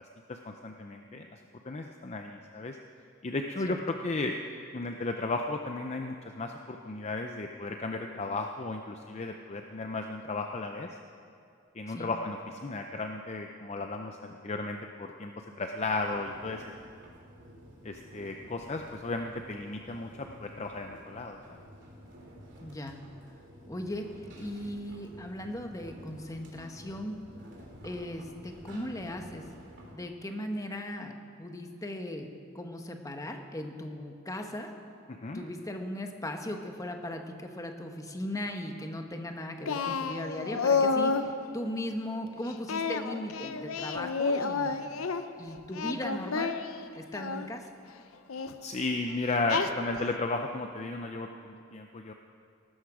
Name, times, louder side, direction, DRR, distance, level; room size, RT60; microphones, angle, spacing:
voice 1, 0.3-1.3 1.7-2.8 3.2-4.3 4.7-10.9 11.7-15.3 15.6-16.6 17.8-21.4 35.1-35.4 48.6-52.1, left 3 dB, 30° left, 4 dB, 0.5 m, -34 dB
sound 1, 15.9-29.9, equal, 55° right, 3.0 m, -51 dB
voice 2, 22.6-23.0 23.7-24.1 24.4-27.2 27.8-29.5 29.9-31.1 31.4-32.3 32.5-34.7 35.3-44.8 45.4-46.6 46.9-47.7, left 1 dB, 15° left, 4 dB, 1.0 m, -38 dB
Singing, 39.7-41.3 42.7-45.2 45.7-47.5 48.3-48.5 49.5-50.1, left 4 dB, 80° left, 0.7 m, -30 dB
18.0 x 13.0 x 4.9 m, 2.5 s
head